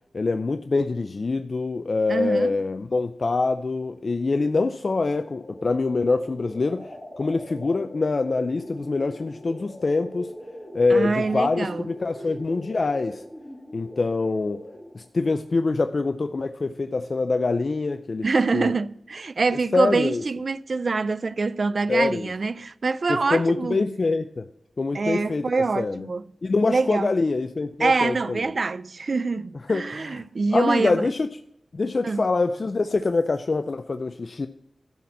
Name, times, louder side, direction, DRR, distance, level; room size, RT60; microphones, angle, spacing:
voice 1, 0.1-10.3 10.7-13.2 13.7-14.6 14.9-18.2 18.5-18.7 19.7-20.2 21.9-22.3 23.1-24.5 24.8-26.1 26.4-28.4 29.7-30.2 30.5-31.3 31.7-34.5, left 3 dB, 55° left, 0.4 m, -25 dB
voice 2, 2.1-2.5 10.9-11.8 18.2-23.8 24.9-26.3 26.7-27.1 27.8-31.1 32.0-32.2, right 4 dB, 60° right, 0.4 m, -25 dB
sound 1, 5.1-15.1, left 1 dB, 15° left, 2.7 m, -42 dB
12.0 x 4.3 x 7.3 m
cardioid pair, 60°, 0 cm